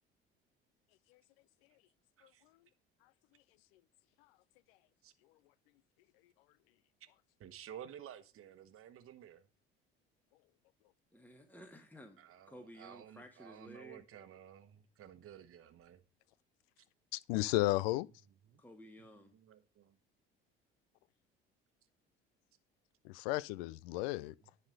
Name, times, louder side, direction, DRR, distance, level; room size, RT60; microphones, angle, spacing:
voice 1, 7.4-9.4 12.2-16.0 18.5-18.6 19.3-20.0, right 10 dB, 45° right, 1.1 m, -53 dB
voice 2, 11.1-14.0 18.6-19.4, equal, 5° left, 1.4 m, -55 dB
voice 3, 17.1-18.1 23.0-24.3, left 19 dB, 75° left, 0.5 m, -33 dB
10.5 x 4.3 x 6.4 m
hypercardioid pair, 65°, 30 cm